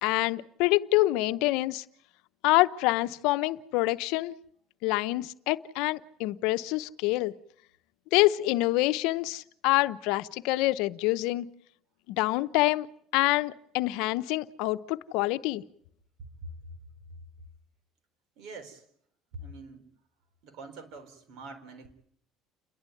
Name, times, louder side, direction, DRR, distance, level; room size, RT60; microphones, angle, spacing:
voice 1, 0.0-1.8 2.4-4.3 4.8-7.3 8.1-11.5 12.1-12.9 13.1-15.6, left 19 dB, 75° left, 13 dB, 0.8 m, -26 dB
voice 2, 18.4-18.9 19.3-20.0 20.4-21.9, right 2 dB, 65° right, 7 dB, 4.3 m, -44 dB
29.5 x 11.5 x 9.2 m, 0.67 s
supercardioid pair, 100°, 0 cm